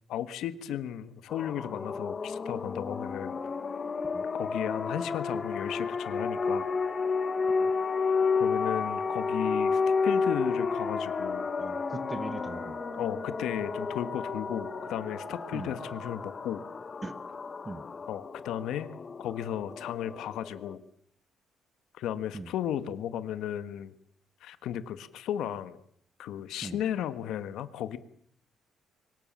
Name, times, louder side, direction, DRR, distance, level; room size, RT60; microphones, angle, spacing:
voice 1, 0.1-3.4 4.3-6.7 8.4-11.5 13.0-16.6 18.1-18.9 19.2-20.8 21.9-23.9 24.4-25.8 26.2-28.0, left 10 dB, 75° left, 13 dB, 1.5 m, -35 dB
sound 1, 1.3-20.7, left 5 dB, 30° left, 1.1 m, -31 dB
sound 2, 6.0-16.1, right 3 dB, 80° right, 6.2 m, -47 dB
voice 2, 11.6-12.8 15.5-15.7 17.0-17.2 17.6-17.8 22.3-22.5 26.6-26.8, right 2 dB, 15° right, 13 dB, 1.5 m, -40 dB
23.5 x 19.0 x 7.3 m, 0.67 s
cardioid pair, 145°, 0 cm